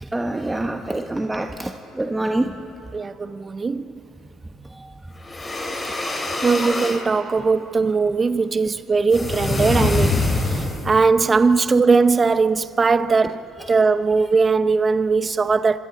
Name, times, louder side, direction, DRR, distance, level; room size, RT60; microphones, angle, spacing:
voice 1, 0.0-2.5, right 1 dB, 15° right, 1.2 m, -25 dB
voice 2, 2.9-3.9 6.4-10.3 10.8-13.4 13.7-15.8, right 4 dB, 30° right, 0.8 m, -19 dB
sound 1, 5.2-7.0 9.1-11.0, left 2 dB, 25° left, 4.5 m, -24 dB
26.0 x 25.0 x 4.2 m
hypercardioid pair, 55°, 0 cm